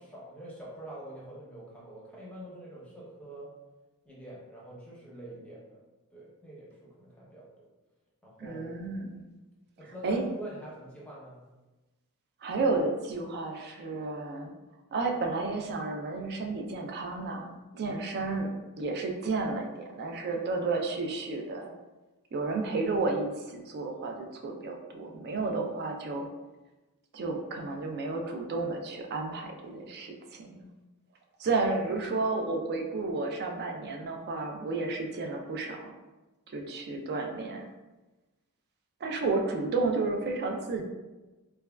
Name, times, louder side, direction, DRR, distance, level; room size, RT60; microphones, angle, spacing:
voice 1, 0.0-3.5 4.0-5.8 6.1-7.6 8.2-8.7 9.8-11.4, right 1 dB, 5° left, -6 dB, 0.7 m, -45 dB
voice 2, 8.4-9.3 10.0-10.2 12.4-14.5 14.9-21.7 22.3-26.3 27.1-30.1 30.5-30.6 31.4-35.9 36.5-37.6 39.0-40.8, right 3 dB, 45° right, 3 dB, 0.3 m, -32 dB
3.2 x 2.2 x 2.2 m, 1.1 s
head